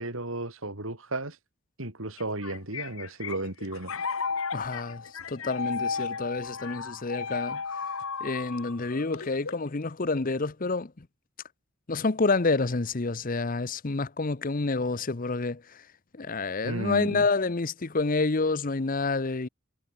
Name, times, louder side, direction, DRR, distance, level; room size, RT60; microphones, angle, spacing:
voice 1, 0.0-1.4 1.8-4.1 16.6-17.3, right 2 dB, 75° right, 4.1 m, -34 dB
sound 1, 2.2-9.7, left 5 dB, 80° left, 1.6 m, -34 dB
voice 2, 4.5-7.6 8.2-11.1 11.9-15.8 16.1-19.5, left 3 dB, 40° left, 0.8 m, -28 dB
head